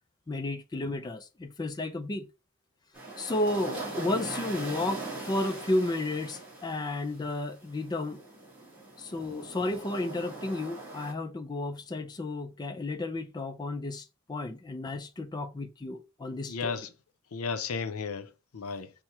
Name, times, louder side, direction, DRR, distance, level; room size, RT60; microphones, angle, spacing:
voice 1, 0.3-2.3 3.2-5.0 5.3-8.2 9.0-16.7, left 2 dB, 20° left, 0.4 m, -32 dB
sound 1, 2.9-11.1, right 2 dB, 5° right, 1.5 m, -41 dB
voice 2, 16.5-16.9 17.3-18.9, left 5 dB, 75° left, 0.6 m, -34 dB
4.3 x 2.1 x 4.6 m
head